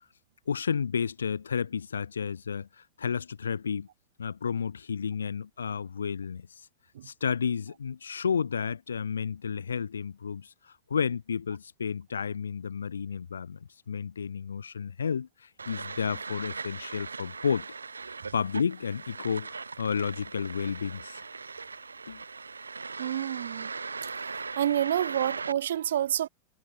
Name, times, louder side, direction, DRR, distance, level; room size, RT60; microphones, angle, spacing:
voice 1, 0.5-3.9 4.2-6.5 7.0-10.5 10.9-13.6 13.9-17.7 18.3-21.2 22.1-22.2, left 6 dB, 70° left, 1.1 m, -31 dB
sound 1, 15.6-25.5, right 4 dB, 75° right, 6.1 m, -39 dB
voice 2, 23.0-23.7 24.6-26.3, right 11 dB, 60° right, 2.7 m, -28 dB
figure-of-eight pair, 90°, 0 cm